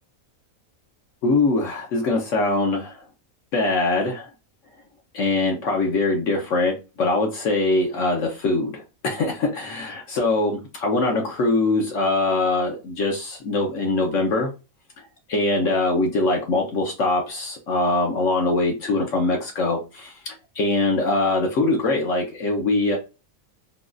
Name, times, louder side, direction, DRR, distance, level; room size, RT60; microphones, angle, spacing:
voice 1, 1.2-3.0 3.5-4.3 5.1-14.5 15.3-23.0, left 2 dB, 65° left, 1.1 m, -22 dB
3.9 x 2.3 x 2.4 m
omnidirectional pair, 1.5 m